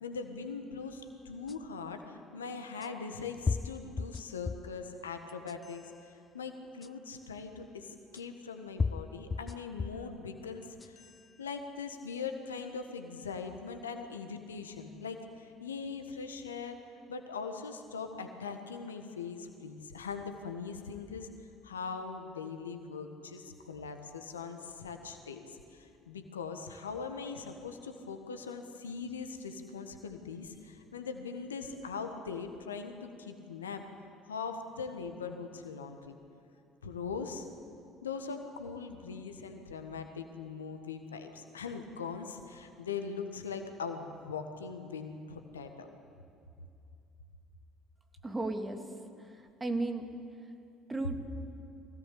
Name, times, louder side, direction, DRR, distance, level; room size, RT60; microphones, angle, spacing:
voice 1, 0.0-11.1 11.4-16.8 17.1-21.3 21.6-33.8 34.2-36.1 36.8-37.5 38.0-45.9, left 5 dB, 80° left, 6 dB, 1.4 m, -41 dB
sound 1, 1.5-1.6 2.8-2.9 3.5-4.8 5.3-5.9 6.8-6.9 8.1-8.2 8.8-10.1 10.6-11.2, left 4 dB, 25° left, 0.5 m, -35 dB
voice 2, 48.2-48.8 49.2-50.1 50.4-50.5 50.9-51.2, right 2 dB, 20° right, 4 dB, 2.7 m, -35 dB
23.5 x 17.0 x 8.4 m, 2.6 s
figure-of-eight pair, 55°, 0 cm